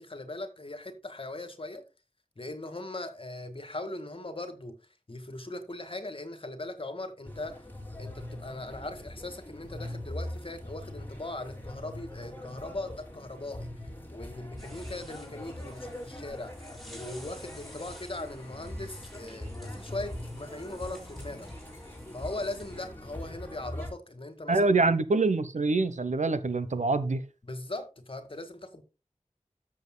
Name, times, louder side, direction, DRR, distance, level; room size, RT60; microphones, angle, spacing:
voice 1, 0.0-1.8 2.4-4.8 5.1-7.6 8.0-13.7 14.1-21.5 22.1-24.7 27.4-28.8, left 2 dB, 45° left, 1.9 m, -39 dB
sound 1, 7.2-23.9, left 1 dB, 15° left, 3.6 m, -42 dB
sound 2, 14.6-22.8, equal, ahead, 5.7 m, -52 dB
voice 2, 24.5-27.2, right 3 dB, 85° right, 0.9 m, -25 dB
13.5 x 7.3 x 2.2 m
wide cardioid pair, 45°, 12 cm